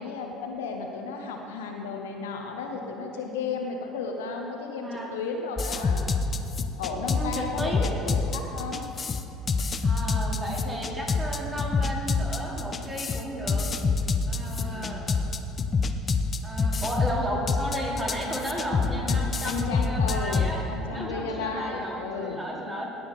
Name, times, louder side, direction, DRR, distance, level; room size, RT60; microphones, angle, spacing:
voice 1, 0.0-6.1 6.8-8.9 14.6-15.2 19.0-22.4, left 4 dB, 70° left, 2 dB, 0.9 m, -34 dB
voice 2, 4.8-5.1 7.1-7.9 9.8-13.7 14.3-15.2 16.4-20.6 20.9-22.9, equal, 15° right, -3 dB, 2.6 m, -33 dB
sound 1, 5.6-20.5, left 4 dB, 30° left, 0.6 m, -26 dB
18.0 x 7.1 x 4.0 m, 2.9 s
figure-of-eight pair, 60°, 0 cm